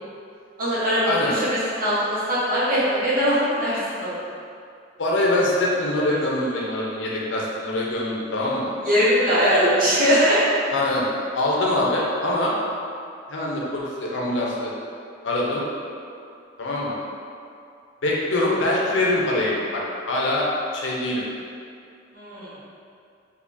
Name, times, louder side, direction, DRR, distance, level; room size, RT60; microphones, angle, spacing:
voice 1, 0.6-4.1 8.8-10.4 22.1-22.6, equal, 50° right, -10 dB, 1.1 m, -21 dB
voice 2, 5.0-8.7 10.7-11.1 11.3-12.5 13.3-14.7 15.2-15.6 16.6-16.9 18.0-19.8 20.1-20.5 20.7-21.2, left 1 dB, 80° left, -4 dB, 0.6 m, -23 dB
3.6 x 2.7 x 2.6 m, 2.4 s
head